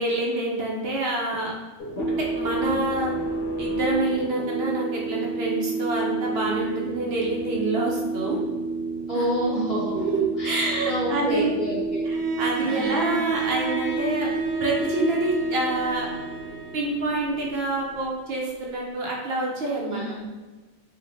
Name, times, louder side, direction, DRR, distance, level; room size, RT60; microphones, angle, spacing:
voice 1, 0.0-1.5 2.1-3.1 3.6-8.4 9.1-9.3 9.9-11.6 12.1-14.3 14.6-16.1 16.7-20.0, right 2 dB, 65° right, -2 dB, 0.7 m, -27 dB
sound 1, 1.8-18.1, right 3 dB, 60° left, 0.9 m, -30 dB
voice 2, 9.1-10.1 10.4-12.1 12.6-13.2 19.9-20.3, equal, ahead, -13 dB, 0.9 m, -29 dB
Bowed string instrument, 12.1-17.1, right 6 dB, 85° right, 1.0 m, -32 dB
3.2 x 2.4 x 2.6 m, 1.3 s
omnidirectional pair, 1.3 m